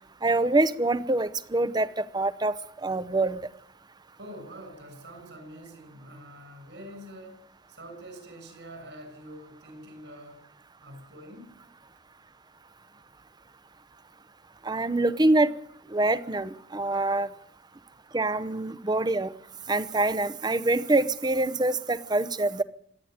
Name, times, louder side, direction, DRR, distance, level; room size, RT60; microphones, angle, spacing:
voice 1, 0.2-3.4 14.6-15.5 15.9-17.3 18.1-19.3 19.7-22.6, right 2 dB, 25° right, 15 dB, 0.8 m, -25 dB
voice 2, 4.1-7.4 7.7-10.4 10.8-11.6, right 1 dB, 70° right, 6 dB, 7.2 m, -45 dB
26.0 x 10.5 x 9.5 m, 0.73 s
head